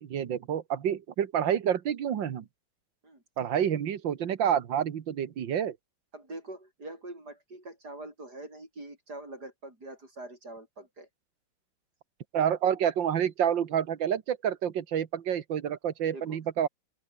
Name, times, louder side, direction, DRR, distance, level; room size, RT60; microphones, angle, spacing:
voice 1, 0.0-2.5 3.4-5.8 12.3-16.7, right 9 dB, 90° right, 2.1 m, -28 dB
voice 2, 6.1-11.1 16.1-16.4, right 2 dB, 60° right, 8.2 m, -44 dB
open air
omnidirectional pair, 2.0 m